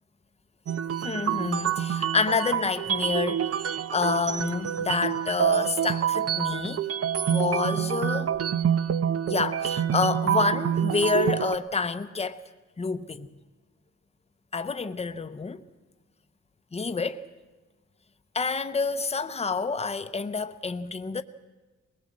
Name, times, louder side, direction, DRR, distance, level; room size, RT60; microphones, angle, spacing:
sound 1, 0.7-11.5, right 9 dB, 55° right, 0.7 m, -27 dB
voice 1, 1.0-3.5 3.9-6.9 7.3-8.3 9.3-12.4 12.8-13.3 14.5-15.6 16.7-17.3 18.3-21.2, left 4 dB, 20° left, 0.8 m, -28 dB
22.0 x 19.5 x 7.5 m
wide cardioid pair, 150°, 29 cm